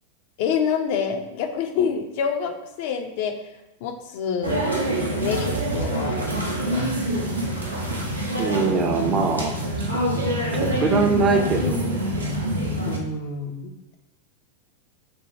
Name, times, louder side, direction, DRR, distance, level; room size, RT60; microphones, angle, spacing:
voice 1, 0.4-3.3 3.8-4.7 5.2-7.8 12.8-13.7, left 6 dB, 50° left, 5 dB, 0.4 m, -28 dB
sound 1, 4.4-13.0, right 1 dB, 80° right, 0.5 m, -25 dB
voice 2, 8.4-9.5 10.5-12.0, right 4 dB, 30° right, 4 dB, 0.5 m, -22 dB
4.3 x 2.2 x 3.0 m, 1.0 s
figure-of-eight pair, 90°, 0 cm